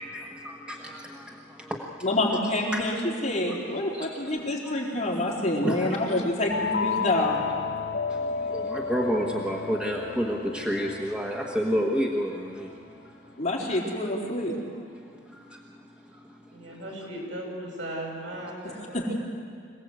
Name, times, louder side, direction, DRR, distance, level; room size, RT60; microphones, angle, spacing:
voice 1, 0.0-2.1 2.7-2.8 3.5-3.6 3.9-4.1 4.6-4.8 5.1-6.0 8.1-13.4 14.9-16.8, equal, 5° right, -1 dB, 1.4 m, -31 dB
voice 2, 2.0-3.0 3.2-7.4 13.4-14.5 18.9-19.1, left 1 dB, 35° left, -3 dB, 4.2 m, -27 dB
sound 1, 6.5-13.0, left 5 dB, 90° left, 1.7 m, -33 dB
voice 3, 16.5-19.2, right 1 dB, 80° right, -1 dB, 7.5 m, -37 dB
26.0 x 18.0 x 8.1 m, 2.2 s
head